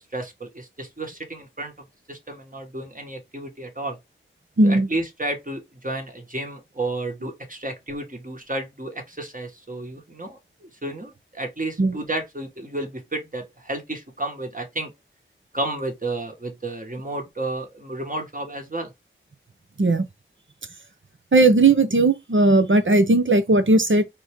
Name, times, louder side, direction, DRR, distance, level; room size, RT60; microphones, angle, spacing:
voice 1, 0.1-1.7 2.1-4.0 4.6-14.9 15.5-18.9, right 2 dB, 40° right, 1.5 m, -32 dB
voice 2, 4.6-4.9 11.8-12.0 19.8-20.1 21.3-24.0, right 2 dB, 70° right, 0.9 m, -17 dB
4.1 x 3.3 x 3.6 m
wide cardioid pair, 45°, 21 cm